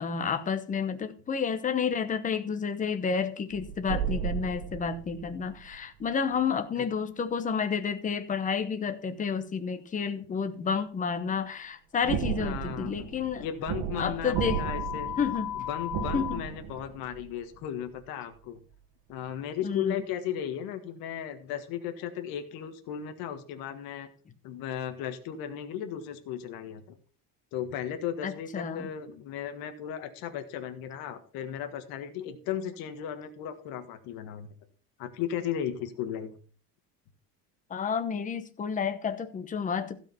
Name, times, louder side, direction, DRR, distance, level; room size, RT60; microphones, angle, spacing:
voice 1, 0.0-13.4 13.9-14.6 15.2-15.5 16.1-16.4 19.6-20.0 28.2-28.9 37.7-40.0, left 6 dB, 20° left, 0.9 m, -30 dB
sound 1, 3.5-6.1 12.0-17.6 18.0-18.1, right 9 dB, 90° right, 1.6 m, -35 dB
voice 2, 12.4-13.1 13.4-15.1 15.5-18.6 19.1-24.1 24.4-26.8 27.5-34.5 35.0-36.3, left 9 dB, 85° left, 1.6 m, -36 dB
sound 2, 14.4-16.4, left 11 dB, 15° right, 1.5 m, -35 dB
15.5 x 5.2 x 5.7 m
cardioid pair, 165°, 35 cm